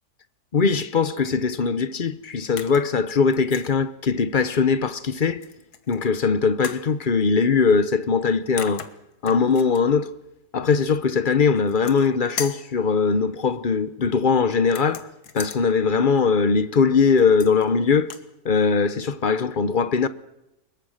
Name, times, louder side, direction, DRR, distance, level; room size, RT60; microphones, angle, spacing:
voice 1, 0.5-5.4 5.9-8.9 9.2-10.1 10.5-15.1 15.3-18.1 18.4-20.1, left 5 dB, 40° left, 0.8 m, -21 dB
sound 1, 2.6-2.9 3.3-3.7 5.4-6.0 6.6-6.9 8.2-8.3 8.6-9.8 11.6-12.1 12.4-12.7 14.7-15.6 17.2-17.7 18.0-18.3, left 7 dB, 70° left, 1.9 m, -37 dB
24.5 x 21.5 x 6.5 m
omnidirectional pair, 1.8 m